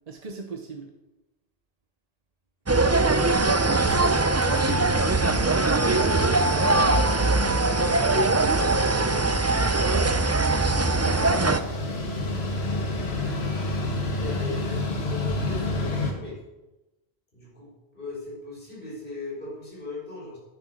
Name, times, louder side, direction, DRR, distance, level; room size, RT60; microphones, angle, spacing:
voice 1, 0.1-0.9 4.4-4.7 11.3-11.8 12.1-12.4, right 3 dB, 40° right, 4 dB, 0.9 m, -39 dB
sound 1, 2.7-11.6, right 2 dB, 20° right, 0.4 m, -21 dB
Mechanical fan, 3.1-3.2 3.5-3.6 3.8-16.1, left 2 dB, 85° left, 1.7 m, -31 dB
voice 2, 3.1-3.6 5.8-8.9 14.1-16.4 17.3-20.4, left 3 dB, 60° left, -6 dB, 5.1 m, -39 dB
10.5 x 9.7 x 6.3 m, 1.1 s
omnidirectional pair, 1.0 m